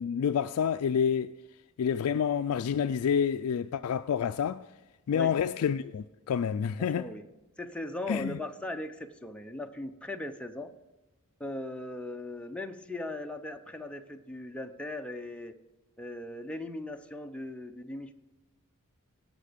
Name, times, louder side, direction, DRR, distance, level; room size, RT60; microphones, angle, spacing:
voice 1, 0.0-1.3 1.8-4.7 5.1-7.1 8.1-8.4, left 7 dB, 70° left, 0.3 m, -28 dB
voice 2, 6.8-7.2 7.6-10.7 11.4-15.5 16.0-18.1, left 1 dB, 5° left, 0.7 m, -38 dB
18.0 x 6.2 x 5.1 m
head